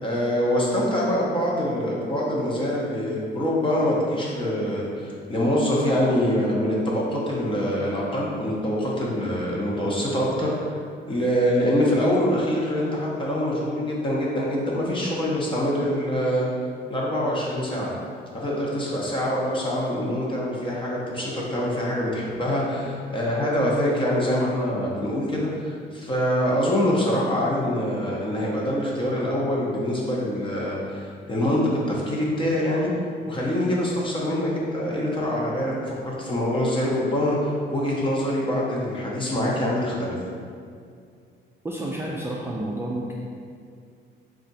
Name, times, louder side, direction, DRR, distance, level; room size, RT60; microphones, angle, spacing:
voice 1, 0.0-10.5 11.1-16.5 16.9-17.9 18.3-31.6 31.9-32.9 33.3-40.2, equal, 25° left, -4 dB, 0.9 m, -24 dB
voice 2, 41.6-43.1, right 1 dB, 10° right, -5 dB, 0.4 m, -30 dB
3.5 x 2.4 x 4.1 m, 2.3 s
cardioid pair, 90°, 20 cm